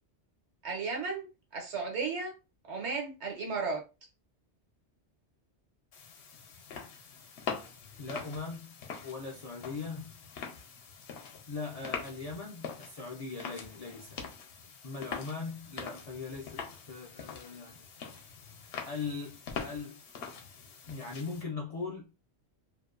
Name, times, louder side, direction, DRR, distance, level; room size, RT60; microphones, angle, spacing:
voice 1, 0.6-1.3 1.5-2.3 2.7-3.8, right 4 dB, 80° right, 1.2 m, -34 dB
sound 1, 5.9-21.4, left 6 dB, 75° left, 0.8 m, -44 dB
voice 2, 8.0-10.1 11.5-14.2 14.8-17.8 18.8-20.0 20.9-22.1, left 4 dB, 55° left, 0.4 m, -40 dB
2.6 x 2.1 x 2.3 m
omnidirectional pair, 1.1 m